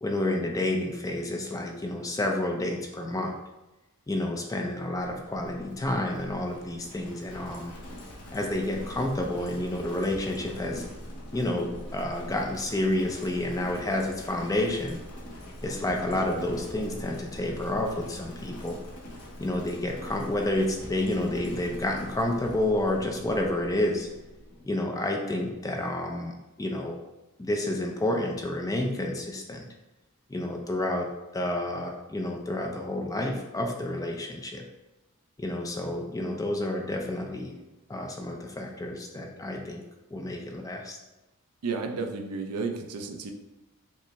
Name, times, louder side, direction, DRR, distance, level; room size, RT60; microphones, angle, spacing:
voice 1, 0.0-3.3 4.1-7.8 8.3-10.8 11.3-15.0 15.6-18.8 19.4-24.1 24.6-27.0 27.4-29.7 30.3-34.6 35.4-37.6 37.9-39.8 40.1-41.0, left 1 dB, 15° left, 2 dB, 0.4 m, -30 dB
Livestock farm animals working animals, 5.0-24.7, equal, 80° left, 0.9 m, -43 dB
voice 2, 41.6-43.3, right 4 dB, 90° right, 5 dB, 0.4 m, -32 dB
5.3 x 2.0 x 3.3 m, 1.0 s
head